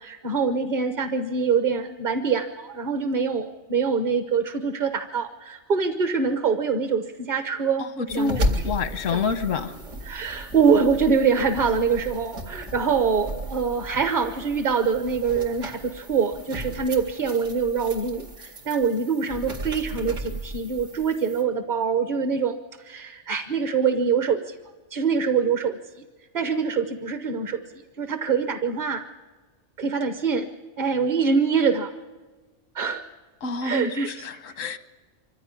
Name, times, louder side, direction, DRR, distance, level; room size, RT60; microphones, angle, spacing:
voice 1, 0.0-7.8 8.1-8.6 9.1-9.2 10.1-24.6 24.9-25.8 26.3-27.6 28.0-29.0 29.8-30.5 30.8-31.9 32.7-33.0 33.6-34.1, right 5 dB, 40° right, 8 dB, 1.1 m, -24 dB
voice 2, 7.8-9.8 33.4-34.8, left 4 dB, 90° left, 11 dB, 1.4 m, -28 dB
sound 1, 8.1-21.4, equal, 80° right, 2.6 m, -34 dB
24.5 x 15.5 x 9.7 m, 1.3 s
omnidirectional pair, 1.3 m